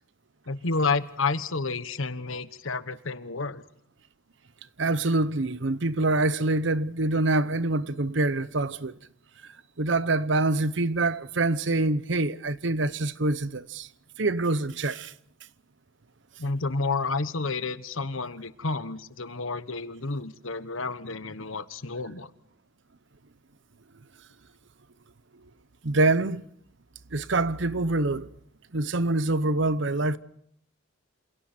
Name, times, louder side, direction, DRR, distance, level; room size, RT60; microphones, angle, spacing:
voice 1, 0.5-3.6 16.4-22.3, left 3 dB, 80° left, 1.3 m, -30 dB
voice 2, 4.8-9.0 9.8-13.9 14.2-15.1 25.8-26.5 27.1-28.3 28.7-30.2, right 2 dB, 65° right, 0.9 m, -25 dB
28.0 x 27.5 x 4.4 m
head